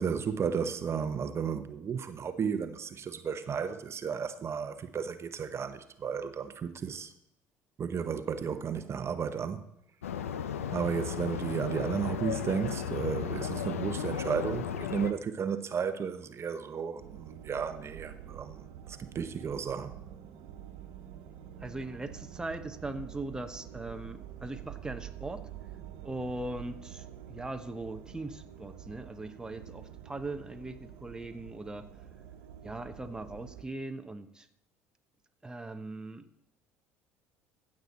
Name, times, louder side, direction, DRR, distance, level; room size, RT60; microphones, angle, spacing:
voice 1, 0.0-7.1 7.8-9.7 10.7-19.9, right 6 dB, 35° right, 0.9 m, -33 dB
sound 1, 10.0-15.1, left 8 dB, 85° left, 0.6 m, -35 dB
sound 2, 17.0-33.7, right 10 dB, 70° right, 1.3 m, -47 dB
voice 2, 21.6-25.5 26.0-31.9 32.6-34.5 35.4-36.3, right 2 dB, 10° right, 0.9 m, -40 dB
15.5 x 7.7 x 4.2 m
hypercardioid pair, 65°, 7 cm